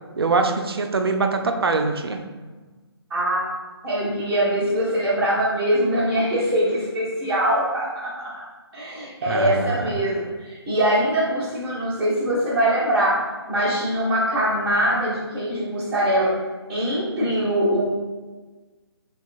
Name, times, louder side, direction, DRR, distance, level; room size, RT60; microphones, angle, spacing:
voice 1, 0.2-2.3 9.3-9.8, right 3 dB, 65° right, 5 dB, 0.4 m, -23 dB
voice 2, 3.1-3.4 3.8-8.1 8.4-8.5 8.7-13.2 13.5-16.3 16.7-17.8, right 1 dB, 10° right, -11 dB, 0.8 m, -22 dB
5.4 x 2.3 x 2.5 m, 1.3 s
figure-of-eight pair, 145°, 14 cm